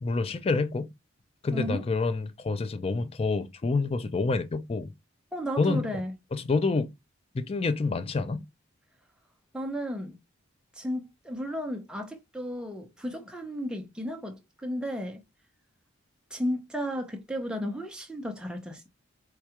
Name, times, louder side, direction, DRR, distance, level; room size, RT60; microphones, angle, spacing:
voice 1, 0.0-0.9 1.4-4.9 5.6-5.9 6.3-6.9 7.3-8.4, left 3 dB, 30° left, 0.3 m, -27 dB
voice 2, 1.5-1.8 5.3-6.1 9.5-10.2 10.8-15.2 16.3-18.9, equal, 5° right, 0.6 m, -34 dB
4.5 x 2.3 x 2.8 m
head